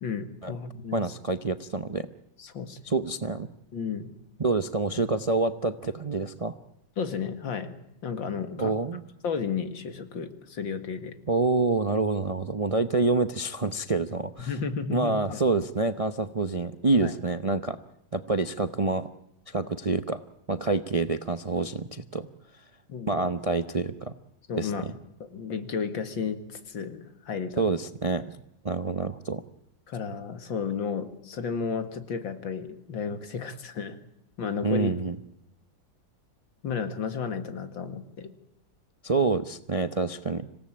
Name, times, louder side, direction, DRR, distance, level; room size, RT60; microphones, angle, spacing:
voice 1, 0.0-1.0 2.4-2.8 3.7-4.1 7.0-7.8 8.0-8.7 9.2-11.2 14.5-15.4 17.0-17.1 22.9-23.3 24.5-24.9 25.2-27.6 29.9-34.0 34.4-34.9 36.6-38.3, left 6 dB, 85° left, 9 dB, 2.7 m, -33 dB
voice 2, 0.9-2.1 2.8-3.5 4.4-6.5 8.6-9.0 11.3-14.5 14.9-17.8 18.1-19.1 19.5-20.2 20.5-22.3 23.1-24.1 24.6-24.9 27.6-29.4 34.6-35.2 39.0-40.5, right 3 dB, 40° right, 11 dB, 0.4 m, -27 dB
26.5 x 17.0 x 8.7 m, 0.84 s
omnidirectional pair, 2.0 m